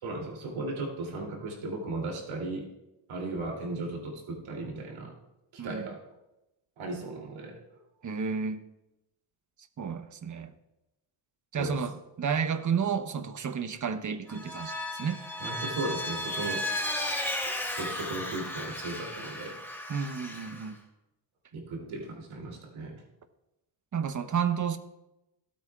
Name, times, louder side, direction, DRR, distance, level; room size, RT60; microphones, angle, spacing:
voice 1, 0.0-2.7 3.1-5.1 5.5-6.0 6.8-7.6 11.6-11.8 15.4-16.7 17.4-19.6 19.9-20.0 21.5-23.0, right 2 dB, 70° right, 0 dB, 3.0 m, -36 dB
voice 2, 8.0-8.6 9.8-10.5 11.5-14.7 15.0-15.2 19.9-20.8 23.9-24.8, right 6 dB, 35° right, 10 dB, 0.9 m, -31 dB
Vehicle, 14.3-20.7, left 1 dB, 5° left, 2.3 m, -35 dB
16.5 x 8.6 x 2.4 m, 0.94 s
cardioid pair, 80°, 49 cm